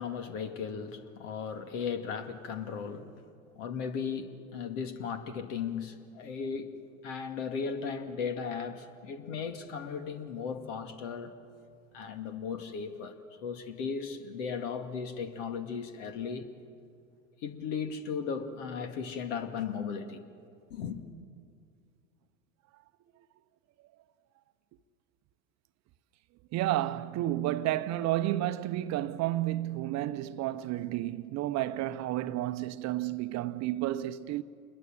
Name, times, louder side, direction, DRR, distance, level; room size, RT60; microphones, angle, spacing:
voice 1, 0.0-3.2 3.6-6.7 7.0-11.4 11.9-16.5 17.4-20.2 20.7-21.0, left 6 dB, 65° left, 2.4 m, -36 dB
voice 2, 26.5-34.4, right 14 dB, 40° right, 0.9 m, -31 dB
28.0 x 21.5 x 7.5 m
hypercardioid pair, 90°, 41 cm